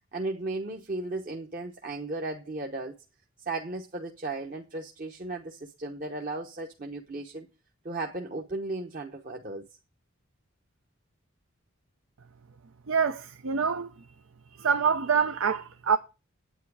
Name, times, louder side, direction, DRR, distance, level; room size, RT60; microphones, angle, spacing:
voice 1, 0.1-3.0 3.4-7.5 7.8-9.6, right 2 dB, 40° right, 0.9 m, -35 dB
voice 2, 12.9-13.9 14.6-16.0, right 6 dB, 75° right, 0.6 m, -25 dB
9.4 x 8.7 x 4.8 m
head